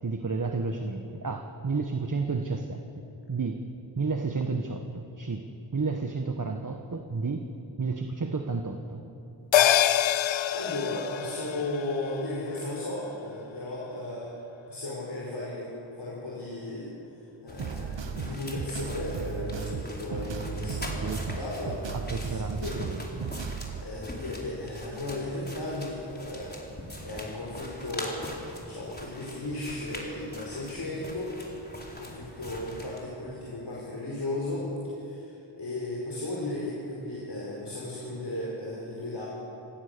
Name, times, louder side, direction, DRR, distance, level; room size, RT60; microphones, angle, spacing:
voice 1, 0.0-3.6 4.0-7.5 7.8-9.0 21.0-21.2 21.9-23.3, right 4 dB, 40° right, 5 dB, 1.5 m, -32 dB
sound 1, 9.5-14.2 14.6-14.7, left 11 dB, 80° left, 0.6 m, -27 dB
voice 2, 10.0-14.3 14.7-16.9 17.4-22.8 23.7-26.6 27.0-31.3 31.9-39.3, left 2 dB, 60° left, -5 dB, 5.2 m, -35 dB
sound 2, 17.5-33.0, left 1 dB, 20° left, 4.5 m, -43 dB
sound 3, 17.6-23.8, right 5 dB, 70° right, 1.3 m, -35 dB
28.0 x 16.0 x 6.9 m, 2.8 s
cardioid pair, 50°, 46 cm